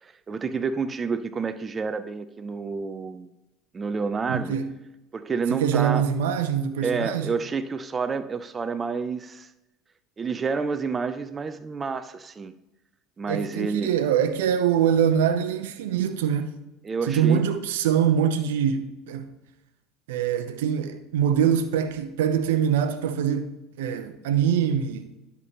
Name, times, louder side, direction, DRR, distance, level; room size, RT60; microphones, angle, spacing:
voice 1, 0.0-3.3 3.7-4.6 5.1-6.1 6.8-9.5 10.2-12.5 13.2-13.9 16.8-17.4, right 5 dB, 30° right, 0.6 m, -29 dB
voice 2, 4.3-4.7 5.5-7.3 13.3-16.5 17.1-19.3 20.1-23.5 23.8-25.1, right 8 dB, 75° right, 0.7 m, -24 dB
11.0 x 6.8 x 3.0 m
hypercardioid pair, 75°, 0 cm